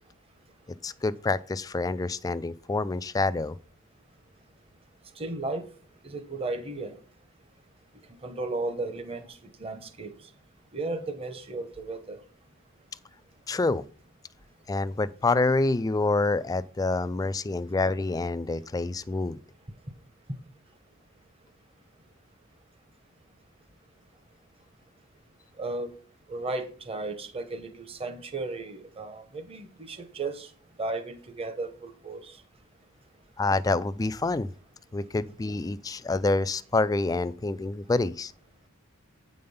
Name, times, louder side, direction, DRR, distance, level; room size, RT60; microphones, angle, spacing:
voice 1, 0.8-3.6 13.5-13.8 14.7-19.4 33.4-34.5 34.9-38.3, left 3 dB, 15° left, 0.3 m, -27 dB
voice 2, 5.2-5.6 6.0-6.9 8.2-10.1 10.7-12.2 25.6-25.9 26.3-30.5 30.8-32.4, right 2 dB, 25° right, 0.9 m, -34 dB
8.6 x 5.2 x 5.5 m
head